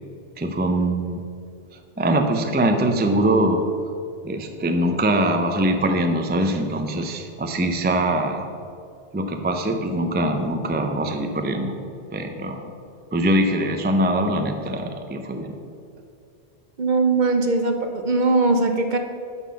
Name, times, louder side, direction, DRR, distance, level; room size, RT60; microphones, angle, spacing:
voice 1, 0.4-1.2 2.0-3.6 4.2-8.5 9.1-11.7 12.1-12.7 13.1-15.5, right 1 dB, 15° right, 5 dB, 0.3 m, -22 dB
voice 2, 16.8-19.0, right 3 dB, 50° right, 5 dB, 0.7 m, -20 dB
11.0 x 4.0 x 6.8 m, 2.5 s
omnidirectional pair, 1.2 m